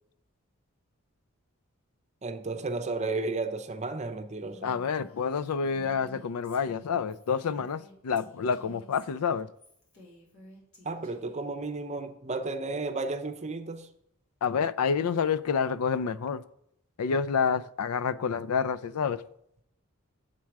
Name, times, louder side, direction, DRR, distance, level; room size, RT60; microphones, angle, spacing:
voice 1, 2.2-4.7 10.8-13.9, right 3 dB, 30° right, 0.6 m, -33 dB
Female speech woman speaking, 4.4-11.5, left 1 dB, 70° left, 3.5 m, -53 dB
voice 2, 4.6-9.5 14.4-16.4 17.0-19.2, left 6 dB, 85° left, 0.4 m, -28 dB
7.5 x 7.4 x 4.6 m
head